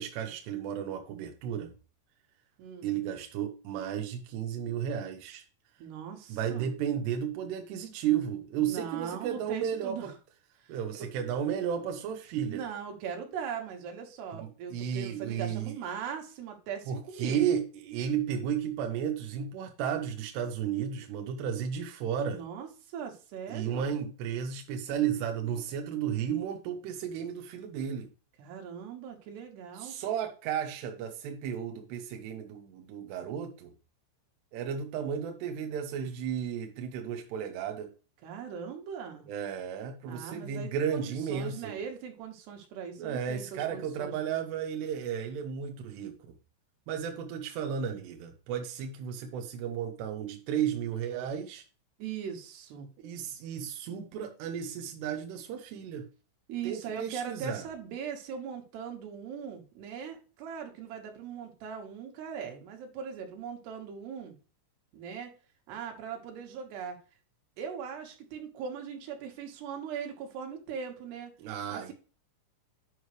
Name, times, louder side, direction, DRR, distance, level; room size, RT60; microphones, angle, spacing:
voice 1, 0.0-1.7 2.8-5.4 6.3-10.1 10.7-12.6 14.4-15.8 16.9-22.4 23.5-28.1 29.8-33.7 34.5-37.9 39.3-41.8 43.0-46.2 46.9-51.6 53.0-56.1 56.6-57.7 71.4-71.9, right 8 dB, 80° right, 4 dB, 2.4 m, -33 dB
voice 2, 2.6-2.9 5.8-6.7 8.6-10.1 10.6-11.1 12.5-17.4 22.3-23.9 28.4-30.0 38.2-39.2 40.1-44.4 52.0-52.9 56.5-64.3 64.9-65.3 65.7-67.0 67.6-71.3 71.7-71.9, right 7 dB, 65° right, 2 dB, 3.2 m, -40 dB
9.6 x 5.5 x 3.2 m, 0.35 s
omnidirectional pair, 5.9 m